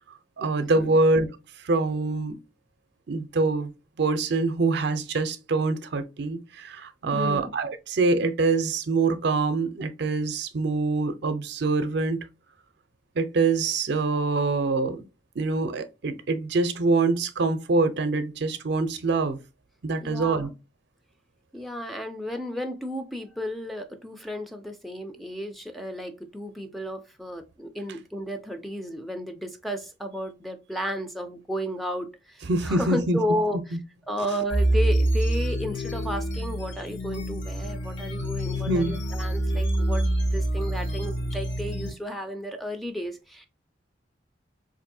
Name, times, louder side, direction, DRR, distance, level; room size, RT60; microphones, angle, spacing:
voice 1, 0.4-1.3 1.6-2.4 3.1-3.7 4.0-12.3 13.2-15.0 15.4-19.4 19.8-20.5 32.4-33.2 33.7-33.8 38.7-39.0, right 3 dB, 65° right, 0.5 m, -25 dB
voice 2, 7.1-7.5 20.0-20.5 21.5-33.8 34.1-43.5, equal, ahead, 0.4 m, -33 dB
sound 1, 34.5-41.9, right 1 dB, 70° left, 0.9 m, -26 dB
4.0 x 2.6 x 2.6 m
head